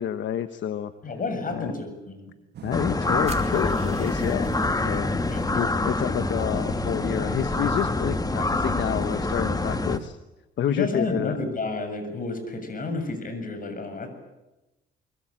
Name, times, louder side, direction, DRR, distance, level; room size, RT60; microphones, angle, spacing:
voice 1, 0.0-0.9 1.5-1.7 2.6-4.6 4.8-10.2 10.6-11.4, left 10 dB, 70° left, 10 dB, 1.2 m, -29 dB
voice 2, 1.0-2.3 5.3-5.6 10.7-14.1, left 3 dB, 45° left, 8 dB, 7.5 m, -31 dB
sound 1, 2.5-10.1, right 9 dB, 55° right, 1.2 m, -39 dB
sound 2, 2.7-10.0, left 2 dB, 20° left, 1.5 m, -26 dB
sound 3, 3.3-5.4, right 4 dB, 35° right, 3.9 m, -46 dB
25.0 x 24.0 x 9.0 m, 1.0 s
cardioid pair, 90°, 20 cm